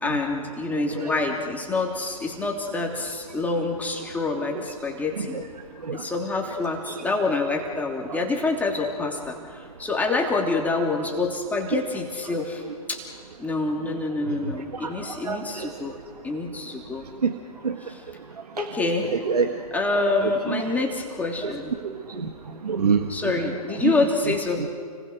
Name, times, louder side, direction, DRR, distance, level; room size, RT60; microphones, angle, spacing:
voice 1, 0.0-5.4 5.9-12.6 12.9-13.0 13.4-16.0 16.2-17.1 17.8-18.0 18.6-19.2 19.7-21.7 23.1-24.7, left 3 dB, 10° left, 0 dB, 3.1 m, -27 dB
voice 2, 14.3-14.9 15.2-15.7 17.2-17.3 17.6-17.8 19.1-19.5 20.2-20.6 21.4-21.5 21.8-22.3 22.6-23.3 23.8-23.9, right 5 dB, 75° right, 5 dB, 1.7 m, -26 dB
30.0 x 20.5 x 6.4 m, 2.1 s
figure-of-eight pair, 120°, 20 cm